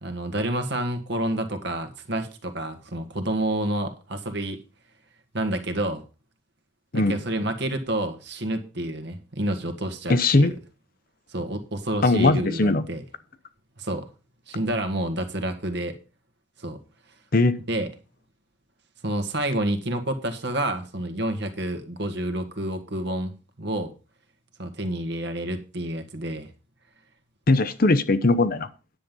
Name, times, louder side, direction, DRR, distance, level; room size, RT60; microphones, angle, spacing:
voice 1, 0.0-4.6 5.3-6.0 6.9-10.5 11.3-13.0 13.8-14.1 14.5-16.0 16.6-16.8 17.7-17.9 19.0-23.3 23.6-23.9 24.6-26.5, right 1 dB, 60° right, 1.7 m, -29 dB
voice 2, 10.1-10.5 12.0-12.8 17.3-17.5 27.5-28.7, left 2 dB, 50° left, 0.8 m, -19 dB
10.0 x 7.7 x 5.3 m
head